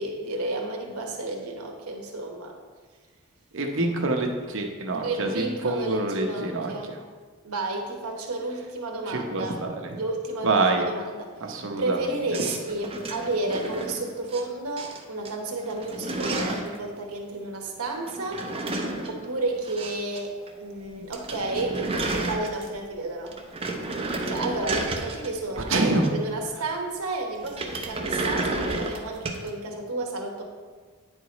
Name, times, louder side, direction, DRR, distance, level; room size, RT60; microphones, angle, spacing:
voice 1, 0.0-2.6 5.0-7.0 7.4-9.6 9.9-11.3 11.8-18.5 19.1-23.4 24.3-30.4, right 2 dB, 85° right, 2 dB, 1.2 m, -31 dB
voice 2, 3.5-6.7 9.1-9.7 10.4-10.8 11.4-12.0 25.7-26.0, right 2 dB, 60° right, 3 dB, 0.8 m, -26 dB
sound 1, 12.3-14.4 14.8-15.3 15.6-16.8 18.1-20.2 20.5-20.6 20.9-21.0 21.1-22.9 23.3-26.4 27.4-29.5, right 2 dB, 25° right, 0.6 m, -31 dB
9.5 x 4.8 x 4.1 m, 1.4 s
head